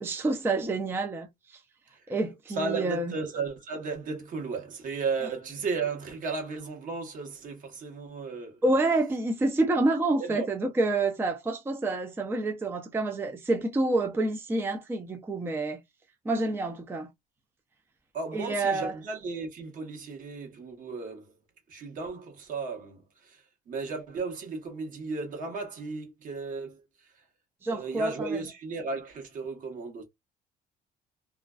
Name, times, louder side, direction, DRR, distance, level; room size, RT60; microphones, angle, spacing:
voice 1, 0.0-1.6 2.1-3.1 8.6-15.8 16.3-17.1 18.3-18.9 27.6-28.4, right 2 dB, 15° right, 0.4 m, -28 dB
voice 2, 2.6-8.6 10.2-10.5 18.1-21.4 21.7-27.2 27.7-30.0, right 4 dB, 50° right, 1.0 m, -35 dB
2.4 x 2.2 x 2.3 m
cardioid pair, 110°, 17 cm